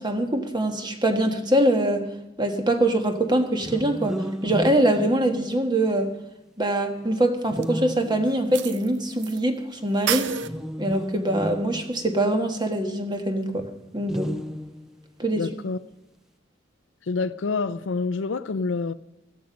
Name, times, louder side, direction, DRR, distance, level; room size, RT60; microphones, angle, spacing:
voice 1, 0.0-2.1 2.4-6.1 6.6-10.3 10.8-13.6 13.9-14.3 15.2-15.5, right 1 dB, 25° right, 1.4 m, -23 dB
sound 1, 3.6-5.9 7.5-8.7 10.4-12.6 14.0-15.1, equal, 5° right, 0.5 m, -33 dB
sound 2, 7.6-7.7 8.5-9.4 9.6-9.7 10.1-10.5, right 9 dB, 65° right, 0.6 m, -28 dB
voice 2, 15.4-15.8 17.1-18.9, left 4 dB, 75° left, 0.5 m, -27 dB
17.0 x 13.0 x 5.2 m
head